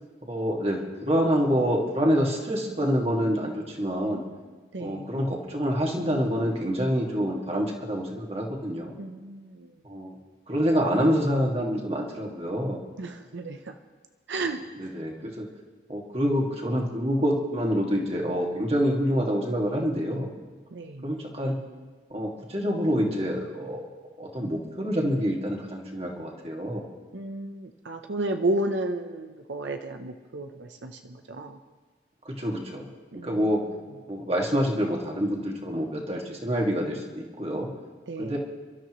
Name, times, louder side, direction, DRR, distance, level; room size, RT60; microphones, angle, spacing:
voice 1, 0.3-4.2 4.8-9.0 9.8-10.1 10.5-12.8 14.8-15.5 15.9-20.3 21.0-21.6 22.1-26.9 32.3-32.9 33.2-33.6 34.1-37.7 38.2-38.4, equal, 35° right, -1 dB, 2.1 m, -27 dB
voice 2, 4.7-5.1 9.0-9.7 13.0-13.7 14.3-14.6 20.7-21.1 27.1-31.6 33.1-33.4 38.1-38.4, right 2 dB, 85° right, 6 dB, 0.8 m, -32 dB
29.0 x 13.0 x 3.1 m, 1.3 s
head